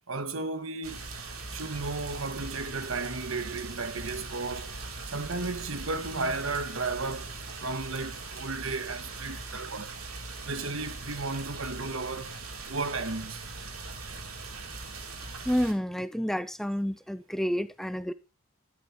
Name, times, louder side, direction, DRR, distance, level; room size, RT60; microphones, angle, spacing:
voice 1, 0.1-1.0 1.5-4.8 5.1-10.0 10.5-12.3 12.7-13.5, right 3 dB, 70° right, 1.4 m, -34 dB
sound 1, 0.8-15.7, right 3 dB, 85° right, 3.0 m, -40 dB
voice 2, 15.5-18.1, equal, ahead, 0.5 m, -29 dB
11.5 x 11.0 x 4.3 m
head